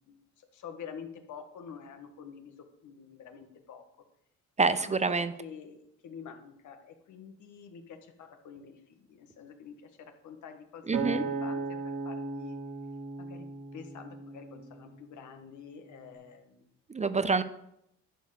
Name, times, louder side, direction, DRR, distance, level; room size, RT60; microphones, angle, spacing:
voice 1, 0.1-2.5 2.8-3.9 4.7-12.6 13.2-13.5 13.7-16.7, left 7 dB, 75° left, 6 dB, 1.6 m, -47 dB
voice 2, 4.6-5.3 10.9-11.2 16.9-17.4, right 4 dB, 25° right, 13 dB, 0.6 m, -26 dB
Acoustic guitar, 10.9-15.3 15.9-16.1, right 3 dB, 90° right, 2.7 m, -37 dB
11.0 x 4.7 x 7.8 m, 0.78 s
cardioid pair, 90°, 30 cm